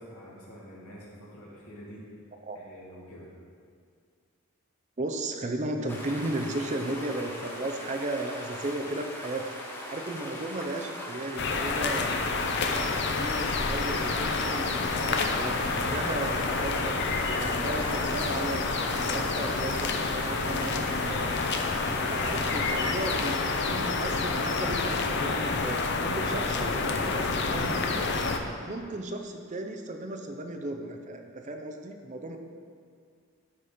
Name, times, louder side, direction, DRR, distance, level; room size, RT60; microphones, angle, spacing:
voice 1, 0.0-2.0 2.5-3.3, equal, 85° left, -5 dB, 2.3 m, -47 dB
voice 2, 5.0-9.4 9.9-12.1 12.6-21.5 22.1-28.1 28.6-32.4, right 2 dB, 35° right, 4 dB, 0.6 m, -35 dB
sound 1, 5.9-23.4, left 1 dB, 10° left, 0.9 m, -41 dB
sound 2, 11.4-28.4, left 3 dB, 50° left, 0.6 m, -28 dB
12.5 x 4.3 x 5.0 m, 2.2 s
head